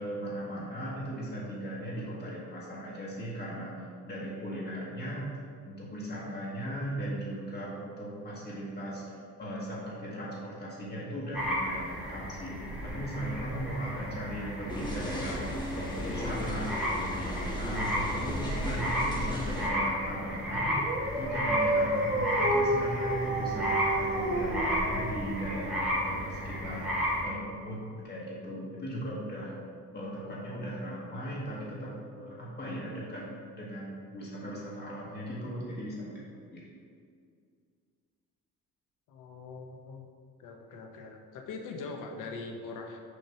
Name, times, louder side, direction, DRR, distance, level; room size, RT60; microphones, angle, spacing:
voice 1, 0.0-5.3 5.7-20.7 21.0-29.5 29.9-36.7, equal, 35° left, -6 dB, 1.2 m, -38 dB
sound 1, 11.3-27.2, equal, 5° right, 1.4 m, -33 dB
sound 2, 14.7-19.7, equal, 15° left, 1.2 m, -35 dB
Dog, 20.5-26.2, right 1 dB, 40° right, 1.5 m, -31 dB
voice 2, 39.1-40.1 40.4-43.0, left 3 dB, 80° left, 3 dB, 0.8 m, -42 dB
6.4 x 2.9 x 5.6 m, 2.2 s
cardioid pair, 140°, 31 cm